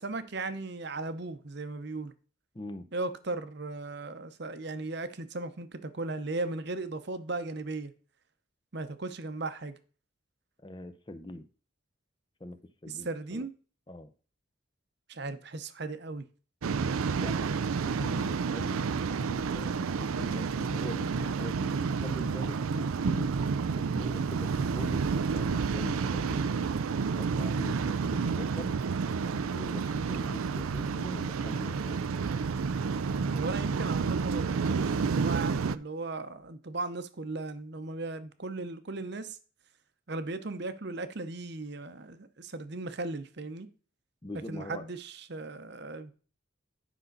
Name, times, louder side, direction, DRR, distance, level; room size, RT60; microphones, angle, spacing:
voice 1, 0.0-2.1 2.9-7.9 8.7-9.8 12.9-13.5 15.1-16.2 33.3-39.4 40.1-43.7 44.5-46.1, right 3 dB, 55° right, 0.8 m, -37 dB
voice 2, 2.5-2.9 10.6-11.5 12.4-12.6 12.8-13.5 13.9-14.1 17.2-23.3 23.8-26.6 27.1-28.7 29.3-32.0 44.2-44.9, left 1 dB, 20° left, 0.7 m, -43 dB
Waves surf, 16.6-35.8, right 5 dB, 90° right, 0.5 m, -30 dB
10.0 x 5.6 x 4.0 m
head